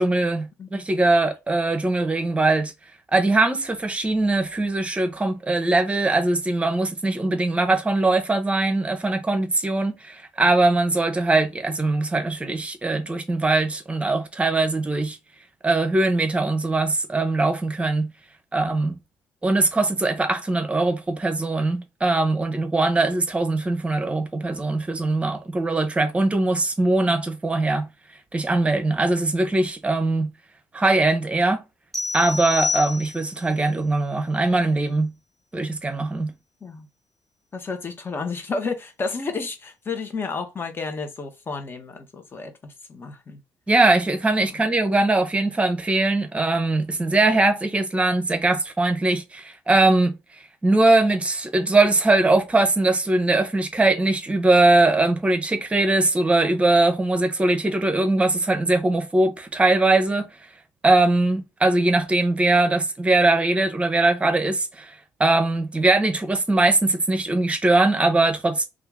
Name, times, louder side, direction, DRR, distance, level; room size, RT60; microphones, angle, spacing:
voice 1, 0.0-2.7 3.1-15.2 15.6-18.1 18.5-19.0 19.4-27.9 28.3-30.3 30.7-31.6 32.1-35.1 35.5-36.3 43.7-60.3 60.8-68.7, right 2 dB, 20° right, 0.8 m, -21 dB
sound 1, 31.9-33.5, left 4 dB, ahead, 1.3 m, -28 dB
voice 2, 37.5-43.4 44.5-44.6, left 4 dB, 35° left, 1.0 m, -31 dB
2.8 x 2.5 x 3.5 m
supercardioid pair, 75°, 7 cm